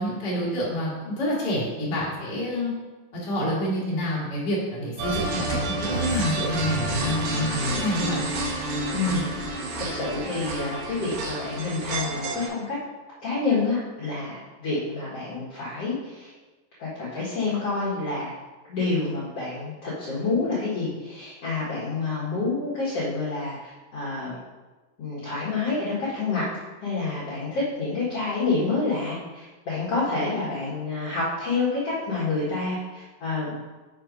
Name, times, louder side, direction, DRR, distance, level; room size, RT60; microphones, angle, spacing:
voice 1, 0.0-2.7 3.2-8.2, equal, 35° left, -6 dB, 2.2 m, -28 dB
sound 1, 5.0-12.5, right 2 dB, 85° right, 2.6 m, -29 dB
voice 2, 8.9-9.3 9.8-12.8 13.2-16.3 16.8-18.3 18.7-24.3 25.0-26.5 26.8-33.5, left 3 dB, 50° left, -10 dB, 2.3 m, -28 dB
6.3 x 4.4 x 5.1 m, 1.2 s
omnidirectional pair, 4.0 m